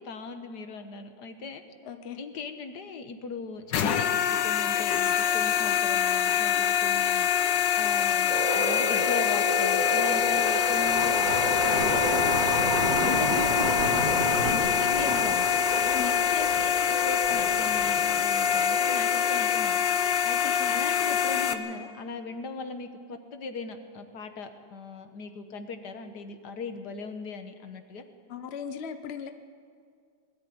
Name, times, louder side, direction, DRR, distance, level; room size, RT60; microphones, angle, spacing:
voice 1, 0.0-1.6 2.2-12.8 13.0-15.5 16.0-19.8 20.2-28.0, left 4 dB, 70° left, 7 dB, 1.8 m, -39 dB
voice 2, 1.8-2.2 15.9-16.1 20.4-20.8 28.3-29.3, left 8 dB, 45° left, 8 dB, 1.0 m, -37 dB
sound 1, 3.7-21.5, left 8 dB, 85° left, 1.6 m, -25 dB
sound 2, 8.3-19.4, equal, 20° right, 2.7 m, -34 dB
sound 3, 10.2-18.5, right 1 dB, 80° right, 6.2 m, -31 dB
21.0 x 13.0 x 9.4 m, 2.1 s
omnidirectional pair, 1.9 m